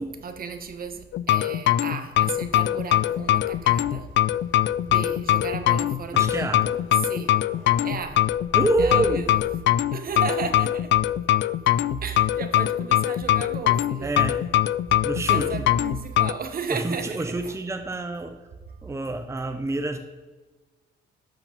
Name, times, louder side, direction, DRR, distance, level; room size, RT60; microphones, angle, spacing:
voice 1, 0.2-4.1 4.8-6.8 7.0-7.4 7.7-8.3 8.8-9.3 9.9-11.0 12.0-14.1 15.3-17.2 17.4-17.5, right 5 dB, 45° right, 1.2 m, -34 dB
sound 1, 1.1-16.3, left 13 dB, 65° left, 0.4 m, -22 dB
sound 2, 2.1-9.7, left 2 dB, 85° left, 3.9 m, -47 dB
voice 2, 6.1-6.7 8.5-9.3 14.0-14.4 15.0-15.7 16.7-18.4 18.8-20.0, right 2 dB, 15° right, 0.8 m, -27 dB
12.0 x 6.1 x 5.1 m
cardioid pair, 90°, 20 cm